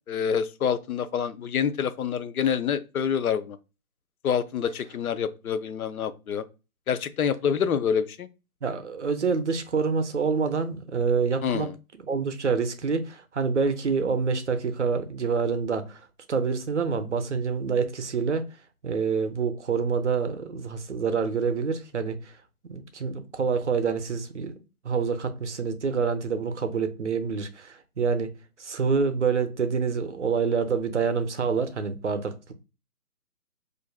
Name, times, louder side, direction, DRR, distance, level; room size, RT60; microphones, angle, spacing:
voice 1, 0.1-3.6 4.2-6.4 6.9-8.3 11.4-11.7, left 7 dB, 70° left, 0.5 m, -27 dB
voice 2, 8.6-11.7 12.0-18.4 18.8-22.3 22.6-24.5 24.8-28.3 28.6-32.5, right 5 dB, 55° right, 0.5 m, -27 dB
4.5 x 2.5 x 2.2 m
hypercardioid pair, 180°, 45 cm